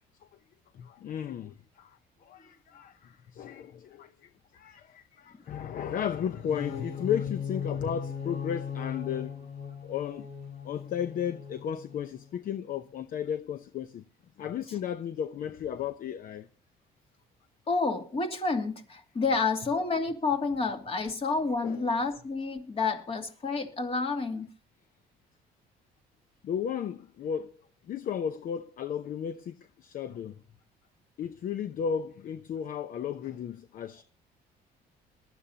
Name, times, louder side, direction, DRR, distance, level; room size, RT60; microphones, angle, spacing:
voice 1, 0.7-9.5 9.8-10.3 10.6-14.0 14.4-16.5 21.6-21.9 26.4-27.5 27.9-30.4 31.2-34.0, left 8 dB, 55° left, 0.8 m, -34 dB
sound 1, 6.3-12.3, left 7 dB, 85° left, 6.4 m, -38 dB
voice 2, 17.7-24.5, left 4 dB, 35° left, 2.7 m, -29 dB
21.5 x 12.5 x 2.8 m
cardioid pair, 110°, 17 cm